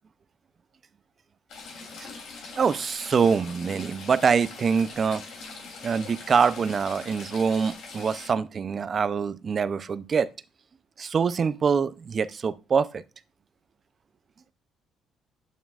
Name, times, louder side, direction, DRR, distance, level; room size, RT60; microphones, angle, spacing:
Stream / Trickle dribble, 1.5-8.3, left 4 dB, 70° left, 2.8 m, -42 dB
voice 1, 2.6-5.2 5.8-10.3 11.0-13.0, right 6 dB, 35° right, 0.5 m, -24 dB
8.4 x 7.3 x 2.4 m
cardioid pair, 120°, 0 cm